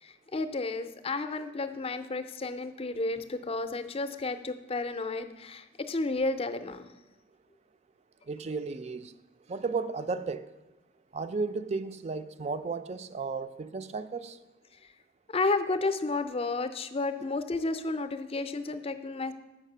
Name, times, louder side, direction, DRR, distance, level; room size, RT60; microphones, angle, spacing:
voice 1, 0.0-6.9 15.3-19.3, left 3 dB, 30° left, 0.5 m, -32 dB
voice 2, 8.3-9.1 9.5-10.5 11.1-14.4, right 4 dB, 35° right, 0.4 m, -34 dB
7.3 x 5.7 x 6.7 m
head